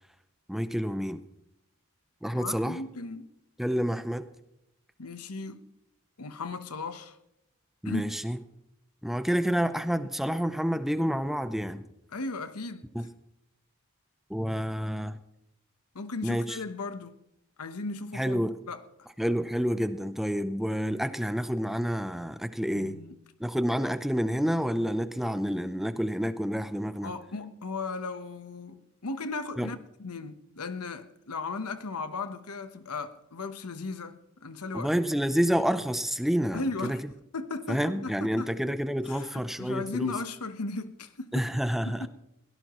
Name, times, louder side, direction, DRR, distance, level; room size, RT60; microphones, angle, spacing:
voice 1, 0.5-1.2 2.2-2.8 3.6-4.2 7.8-8.4 9.0-11.8 12.9-13.1 14.3-15.2 16.2-16.4 18.1-18.5 19.2-23.0 23.4-27.1 29.6-29.7 34.7-37.0 37.7-40.1 41.3-42.1, equal, ahead, 0.6 m, -28 dB
voice 2, 2.3-3.3 5.0-5.6 6.2-7.2 7.8-8.0 12.1-13.1 15.9-17.2 17.6-18.8 22.7-23.1 27.0-34.9 36.5-37.0 37.3-38.5 39.0-41.5 41.8-42.1, left 3 dB, 90° left, 1.1 m, -36 dB
22.5 x 17.5 x 3.1 m
head